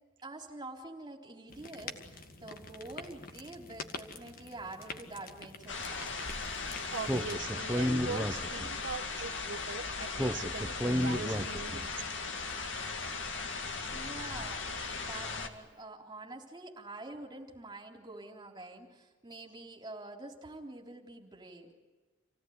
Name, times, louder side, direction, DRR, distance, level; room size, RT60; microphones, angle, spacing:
voice 1, 0.2-6.1 13.9-14.6 15.0-21.7, right 2 dB, 20° right, 1 dB, 3.7 m, -46 dB
sound 1, 1.5-7.3, left 4 dB, 45° left, 1.9 m, -47 dB
sound 2, 5.7-15.5, left 4 dB, 65° left, 2.3 m, -38 dB
voice 2, 6.9-12.0, right 5 dB, 65° right, 3 dB, 1.3 m, -42 dB
Speech, 7.0-8.9 10.2-11.9, equal, 5° right, 0.9 m, -32 dB
28.0 x 17.0 x 9.6 m, 1.3 s
head